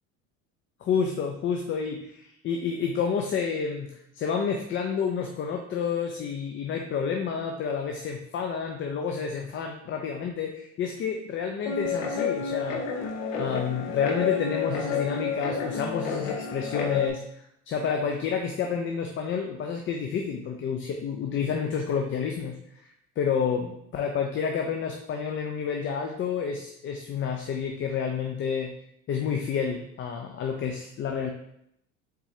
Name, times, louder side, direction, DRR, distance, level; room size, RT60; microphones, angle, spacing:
voice 1, 0.8-3.9 4.1-12.8 13.3-22.5 23.2-28.7 29.1-31.3, left 6 dB, 35° left, 2 dB, 0.5 m, -29 dB
Guitar, 11.6-17.1, left 6 dB, 90° left, 0.8 m, -30 dB
4.4 x 3.7 x 2.7 m, 0.75 s
supercardioid pair, 100°, 38 cm